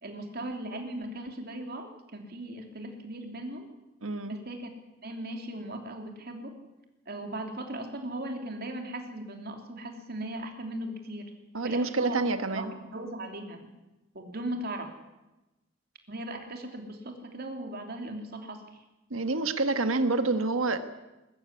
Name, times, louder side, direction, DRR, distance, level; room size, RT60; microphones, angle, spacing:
voice 1, 0.0-3.7 4.3-4.7 5.0-6.5 7.1-11.3 11.6-12.2 12.5-13.6 14.1-14.9 16.1-18.8, right 1 dB, 50° right, 4 dB, 3.1 m, -38 dB
voice 2, 4.0-4.4 11.5-12.7 19.1-20.8, right 3 dB, 85° right, 9 dB, 1.5 m, -27 dB
21.0 x 14.0 x 9.8 m, 1.0 s
head